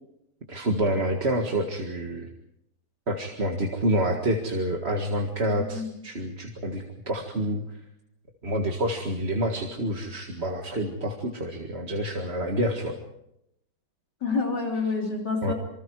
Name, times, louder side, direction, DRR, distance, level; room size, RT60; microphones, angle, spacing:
voice 1, 0.5-2.3 3.1-7.6 8.4-13.0 15.4-15.5, right 1 dB, 35° right, 2 dB, 2.1 m, -28 dB
voice 2, 5.5-5.9 14.2-15.5, left 4 dB, 65° left, 0 dB, 4.0 m, -28 dB
27.5 x 24.5 x 4.8 m, 0.80 s
omnidirectional pair, 2.0 m